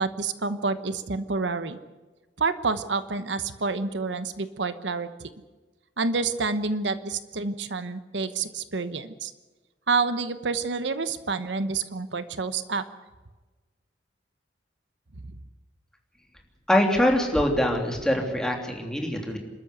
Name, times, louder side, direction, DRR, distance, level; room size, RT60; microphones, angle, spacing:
voice 1, 0.0-1.8 2.4-5.3 6.0-9.3 9.9-12.8, right 4 dB, 85° right, 12 dB, 1.1 m, -28 dB
voice 2, 16.7-19.4, left 1 dB, 5° left, 1 dB, 3.1 m, -23 dB
28.5 x 13.0 x 8.2 m, 1.2 s
head